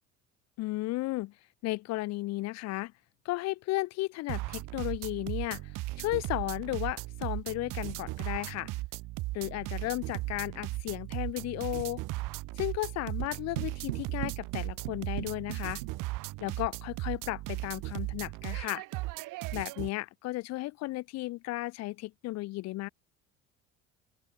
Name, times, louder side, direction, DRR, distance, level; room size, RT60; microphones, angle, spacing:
voice 1, 0.6-1.3 1.6-2.9 3.2-5.7 6.0-8.7 9.3-12.0 12.6-15.8 16.4-18.8 19.5-22.9, left 19 dB, 40° left, 0.6 m, -34 dB
sound 1, 4.3-19.9, right 20 dB, 50° right, 1.2 m, -37 dB
sound 2, 13.2-16.4, right 16 dB, 70° right, 1.0 m, -40 dB
open air
figure-of-eight pair, 55°, 40 cm